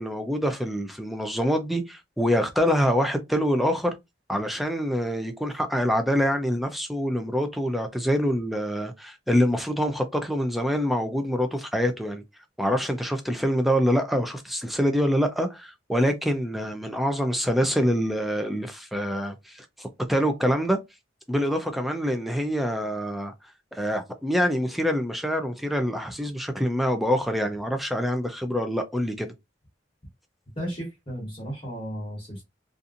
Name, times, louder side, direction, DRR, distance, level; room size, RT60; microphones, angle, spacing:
voice 1, 0.0-4.0 4.3-12.2 12.6-20.8 21.3-23.3 23.7-29.3, equal, ahead, 0.4 m, -25 dB
voice 2, 30.6-32.4, equal, 30° left, 1.0 m, -34 dB
2.7 x 2.5 x 2.5 m
head